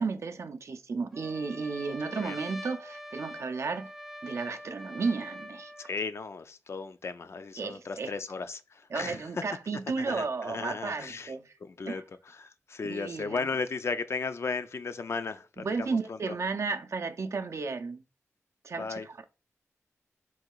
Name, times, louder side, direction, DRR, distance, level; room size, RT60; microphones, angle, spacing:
voice 1, 0.0-3.9 4.2-5.7 7.6-8.1 8.9-11.5 11.9-12.0 12.8-13.5 15.6-18.0 18.6-19.2, right 4 dB, 60° right, 0.5 m, -33 dB
Trumpet, 1.1-6.0, equal, ahead, 0.5 m, -44 dB
voice 2, 5.8-9.4 10.1-11.3 11.6-16.3 18.8-19.1, left 4 dB, 55° left, 0.4 m, -35 dB
3.8 x 2.3 x 4.5 m
cardioid pair, 65°, 5 cm